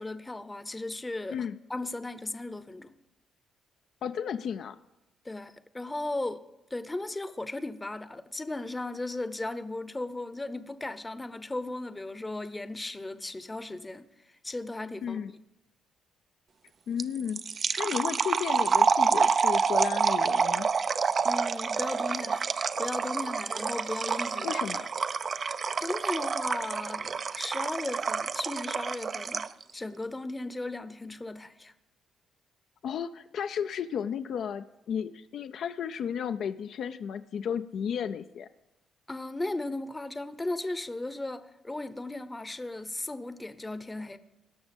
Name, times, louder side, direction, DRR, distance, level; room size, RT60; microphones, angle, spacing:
voice 1, 0.0-2.9 5.2-6.4 6.7-14.1 14.4-15.2 21.2-22.5 22.8-24.5 25.8-29.4 29.7-31.7 39.1-44.2, left 2 dB, 15° left, 12 dB, 0.7 m, -36 dB
voice 2, 4.0-4.8 15.0-15.3 16.9-17.4 17.8-20.7 24.4-24.9 32.8-38.5, left 8 dB, 65° left, 9 dB, 0.4 m, -33 dB
sound 1, 17.0-29.6, right 5 dB, 45° right, 0.4 m, -28 dB
17.5 x 6.2 x 5.2 m, 0.97 s
cardioid pair, 90°, 0 cm